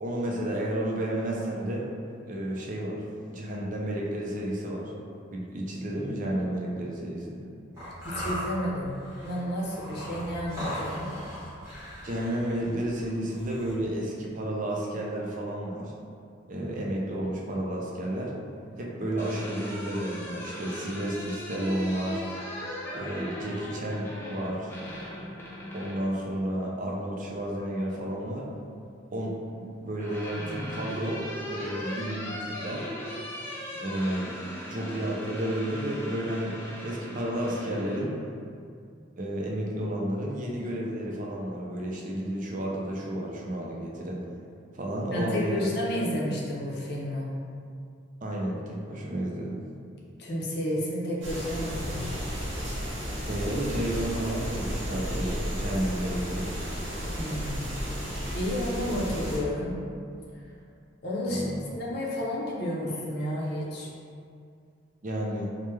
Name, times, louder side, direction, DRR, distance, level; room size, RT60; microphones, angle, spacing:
voice 1, 0.0-1.9 2.2-3.0 3.3-4.9 5.3-7.5 12.0-15.9 16.5-18.3 18.8-22.2 22.9-24.7 25.7-28.5 29.1-31.2 31.5-32.9 33.7-34.3 34.7-36.6 36.8-38.2 39.2-44.2 44.7-45.7 48.2-49.6 53.3-56.6 61.2-61.7 65.0-65.5, right 1 dB, 40° right, -2 dB, 0.5 m, -31 dB
sound 1, 7.8-13.7, equal, 15° right, 1.1 m, -38 dB
voice 2, 8.0-9.0 9.2-11.1 45.1-47.3 50.2-52.1 57.1-57.7 58.3-59.8 61.0-61.4 61.7-63.9, left 1 dB, 55° left, -4 dB, 0.6 m, -31 dB
sound 2, 18.9-26.1 27.6-28.3 29.5-38.0, equal, 10° left, 0.5 m, -39 dB
sound 3, 51.2-59.4, equal, 65° right, 0.9 m, -33 dB
3.2 x 2.1 x 3.1 m, 2.3 s
head